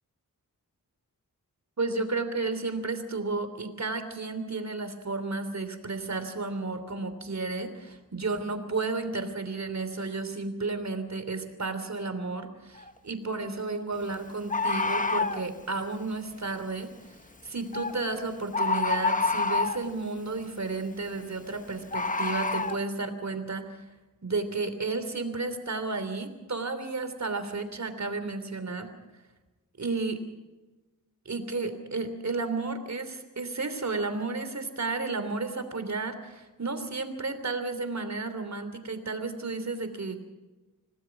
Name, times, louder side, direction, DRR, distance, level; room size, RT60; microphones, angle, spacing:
voice 1, 1.8-16.9 17.4-23.8 24.2-28.9 29.8-30.2 31.2-40.2, right 3 dB, 50° right, 9 dB, 3.2 m, -32 dB
Bird, 12.8-12.9 14.5-15.4 17.7-18.0 18.5-19.9 21.9-22.8, left 3 dB, 25° left, 1.1 m, -27 dB
26.5 x 18.5 x 6.0 m, 1.2 s
wide cardioid pair, 85°, 34 cm